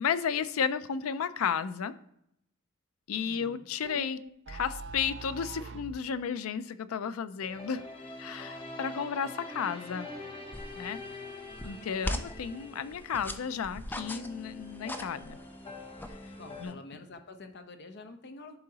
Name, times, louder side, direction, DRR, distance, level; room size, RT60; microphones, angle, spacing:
voice 1, 0.0-1.9 3.1-4.2 4.5-7.8 8.2-10.1 10.8-11.0 11.6-15.4 16.6-16.8, left 7 dB, 80° left, 14 dB, 0.4 m, -33 dB
voice 2, 3.1-3.7 16.3-18.6, left 2 dB, 55° left, 7 dB, 0.8 m, -48 dB
sound 1, 3.9-6.0, right 4 dB, 55° right, 0.5 m, -42 dB
sound 2, 7.4-16.7, left 2 dB, 25° left, 1.0 m, -45 dB
sound 3, 10.5-16.7, left 1 dB, 10° left, 0.4 m, -41 dB
11.0 x 3.8 x 2.8 m, 0.76 s
head